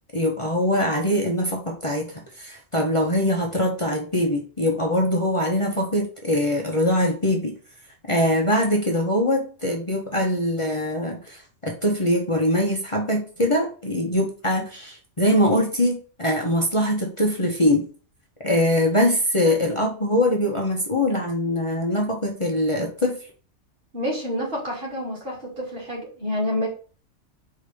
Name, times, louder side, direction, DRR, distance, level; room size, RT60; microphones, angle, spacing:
voice 1, 0.1-7.5 8.1-17.9 18.4-23.3, left 1 dB, 25° left, 0 dB, 1.0 m, -23 dB
voice 2, 23.9-26.7, equal, 55° right, -4 dB, 3.0 m, -28 dB
5.2 x 3.8 x 5.2 m, 0.39 s
omnidirectional pair, 1.2 m